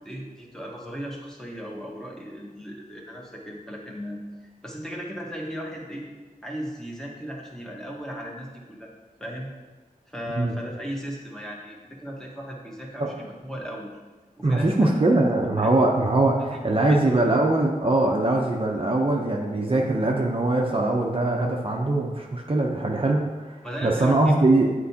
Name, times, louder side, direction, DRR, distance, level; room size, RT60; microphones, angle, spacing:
voice 1, 0.0-4.2 4.6-6.1 6.4-8.9 9.2-9.5 10.1-13.9 14.4-14.9 15.6-15.7 16.8-17.1 23.6-24.3, equal, 5° left, -2 dB, 1.2 m, -36 dB
voice 2, 14.4-24.7, right 2 dB, 35° right, -1 dB, 0.6 m, -22 dB
8.5 x 4.6 x 2.8 m, 1.3 s
wide cardioid pair, 70°, 15 cm